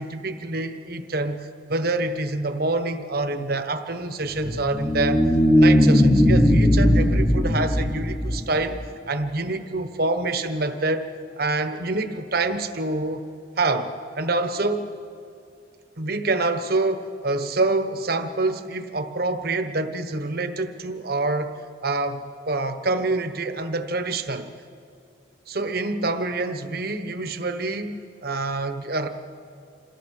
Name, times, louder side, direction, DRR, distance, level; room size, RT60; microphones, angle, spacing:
voice 1, 0.0-5.2 5.5-8.8 9.1-11.1 11.4-13.2 13.6-14.9 16.0-21.5 21.8-24.5 25.5-29.1, right 2 dB, 55° right, 8 dB, 1.2 m, -26 dB
sound 1, 4.3-8.8, equal, 15° left, 1.0 m, -18 dB
27.0 x 15.5 x 6.6 m, 2.5 s
head